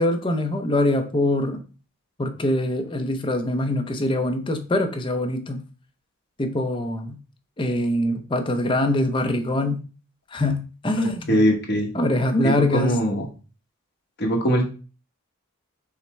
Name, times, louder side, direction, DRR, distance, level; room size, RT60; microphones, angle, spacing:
voice 1, 0.0-1.6 2.2-5.6 6.4-7.2 7.6-9.8 10.3-11.4 11.9-13.0, left 1 dB, 25° left, 6 dB, 0.5 m, -23 dB
voice 2, 11.0-11.9 12.4-13.3 14.2-14.7, equal, 50° left, 0 dB, 1.2 m, -22 dB
5.7 x 2.1 x 4.3 m, 0.35 s
head